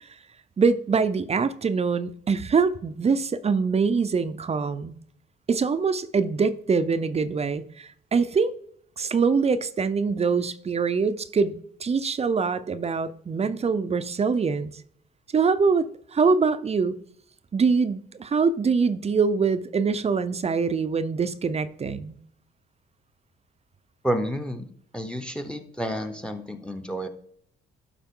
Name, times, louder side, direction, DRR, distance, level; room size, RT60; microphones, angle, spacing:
voice 1, 0.6-4.9 5.5-8.5 9.0-11.5 11.8-14.7 15.3-15.9 16.1-17.0 17.5-22.2, right 5 dB, 30° right, 0.5 m, -24 dB
voice 2, 24.0-24.6 24.9-27.1, equal, 5° left, 0.9 m, -30 dB
12.0 x 4.8 x 3.7 m
cardioid pair, 90°, 20 cm